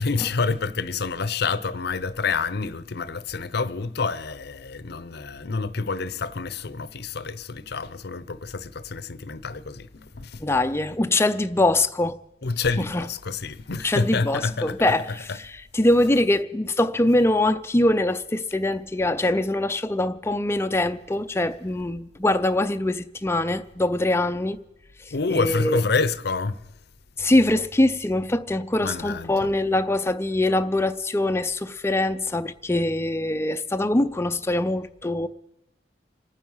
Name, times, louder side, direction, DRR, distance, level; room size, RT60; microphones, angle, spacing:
voice 1, 0.0-10.4 12.4-14.8 25.1-26.6 28.8-29.3, left 4 dB, 60° left, 0.7 m, -28 dB
voice 2, 10.4-12.2 12.8-13.1 13.8-24.6 25.0-25.8 27.2-35.3, left 1 dB, 15° left, 0.5 m, -23 dB
27.0 x 9.6 x 5.6 m
head